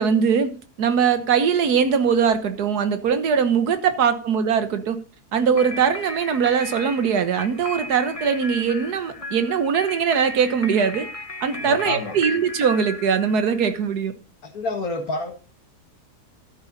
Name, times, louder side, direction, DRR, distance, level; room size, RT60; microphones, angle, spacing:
voice 1, 0.0-5.0 5.3-11.1 11.4-14.1, right 6 dB, 85° right, 10 dB, 1.7 m, -21 dB
sound 1, 5.5-13.9, left 2 dB, 25° left, 0.9 m, -36 dB
voice 2, 11.5-12.2 14.4-15.3, left 3 dB, 70° left, 5 dB, 2.3 m, -29 dB
13.0 x 7.8 x 4.0 m, 0.35 s
omnidirectional pair, 1.6 m